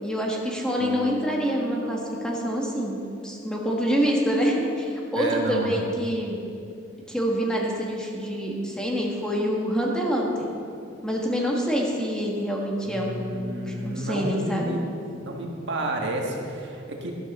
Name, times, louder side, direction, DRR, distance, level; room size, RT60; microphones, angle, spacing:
voice 1, 0.0-6.4 7.1-10.5 11.0-14.8, equal, 5° left, -2 dB, 1.5 m, -26 dB
sound 1, 0.8-5.0, left 2 dB, 75° left, 0.6 m, -40 dB
voice 2, 5.1-5.8 12.8-14.8 15.2-17.1, right 2 dB, 60° right, 0 dB, 1.6 m, -30 dB
12.5 x 12.5 x 4.2 m, 2.6 s
head